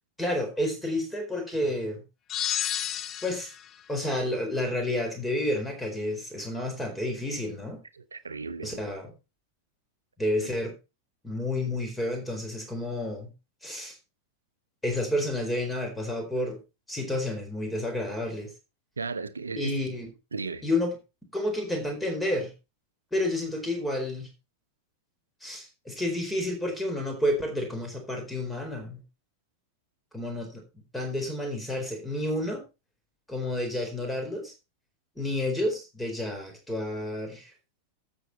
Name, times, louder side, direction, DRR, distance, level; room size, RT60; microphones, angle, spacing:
voice 1, 0.2-2.0 3.2-3.5 3.9-7.8 8.6-9.1 10.2-10.7 11.2-13.3 13.6-14.0 14.8-16.6 16.9-18.5 19.6-20.1 20.6-21.0 21.3-22.5 23.1-24.3 25.4-29.0 30.1-30.6 30.9-32.6 33.3-34.5 35.2-37.5, left 1 dB, 5° left, 4.3 m, -30 dB
sound 1, 2.3-3.7, left 10 dB, 30° left, 0.6 m, -31 dB
voice 2, 8.0-8.8 19.0-19.8 20.3-20.7, right 4 dB, 75° right, 0.8 m, -35 dB
12.5 x 7.9 x 4.1 m
figure-of-eight pair, 90°, 0 cm